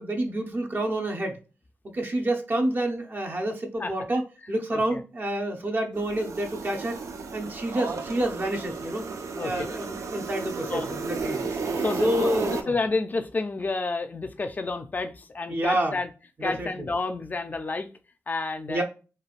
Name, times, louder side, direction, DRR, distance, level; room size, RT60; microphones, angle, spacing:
voice 1, 0.0-1.4 1.9-4.2 4.5-7.0 7.3-9.0 9.4-11.4 12.0-12.7 15.5-16.0 16.4-16.7 18.7-18.8, right 1 dB, 40° right, 3 dB, 0.6 m, -28 dB
voice 2, 4.7-5.0 9.4-9.7 10.7-10.9 11.7-16.1 16.4-17.9 18.3-18.8, left 3 dB, 35° left, 8 dB, 0.4 m, -30 dB
sound 1, 5.9-12.6, right 4 dB, 85° right, 0.4 m, -33 dB
3.3 x 2.3 x 2.4 m, 0.33 s
wide cardioid pair, 95°, 5 cm